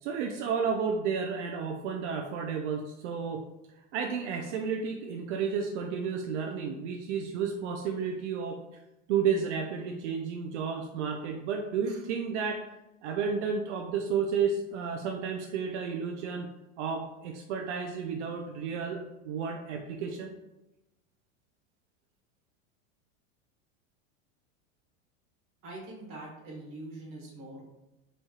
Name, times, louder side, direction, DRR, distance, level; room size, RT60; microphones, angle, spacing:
voice 1, 0.0-3.4 3.9-8.6 9.1-12.6 13.0-16.5 16.8-19.0 19.2-20.3, right 6 dB, 80° right, 3 dB, 0.5 m, -32 dB
voice 2, 25.6-27.6, right 2 dB, 40° right, -2 dB, 1.3 m, -43 dB
4.2 x 3.2 x 2.3 m, 0.96 s
supercardioid pair, 150°, 35 cm